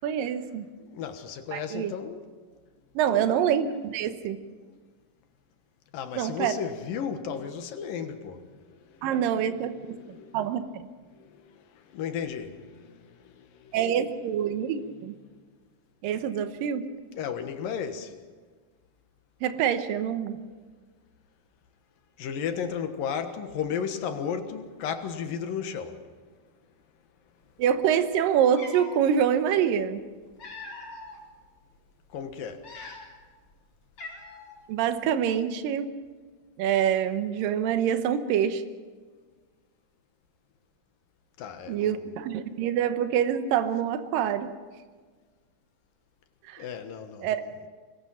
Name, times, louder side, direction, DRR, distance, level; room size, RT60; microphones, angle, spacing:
voice 1, 0.0-0.7 1.5-1.9 3.0-4.4 6.1-6.5 9.0-10.9 13.7-15.2 16.0-16.8 19.4-20.4 27.6-30.1 34.7-35.9 36.6-38.6 41.7-44.5 46.5-46.6 47.2-47.4, right 9 dB, 75° right, 2.7 m, -26 dB
voice 2, 0.8-2.2 3.1-3.4 5.9-9.1 10.0-10.4 11.1-13.7 17.1-18.2 22.2-26.0 32.1-32.6 41.4-42.1 46.6-47.3, left 7 dB, 80° left, 3.1 m, -34 dB
Cat, 28.0-28.1 28.5-29.0 30.0-31.2 31.7-31.9 32.5-33.3 33.5-33.6 34.0-34.6, left 3 dB, 40° left, 5.1 m, -42 dB
25.0 x 20.5 x 5.7 m
omnidirectional pair, 4.1 m